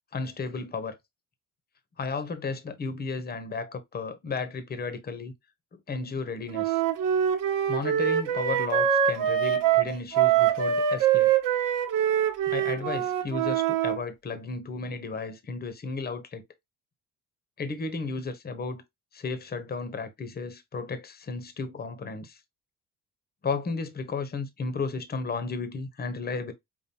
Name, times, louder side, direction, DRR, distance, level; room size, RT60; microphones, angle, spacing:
voice 1, 0.1-1.0 2.0-5.3 5.7-6.8 7.7-11.3 12.5-16.4 17.6-18.8 19.1-22.4 23.4-26.5, left 4 dB, 30° left, 0.9 m, -34 dB
Wind instrument woodwind instrument, 6.5-14.0, right 9 dB, 80° right, 1.0 m, -24 dB
5.3 x 2.6 x 2.7 m
cardioid pair, 135°, 33 cm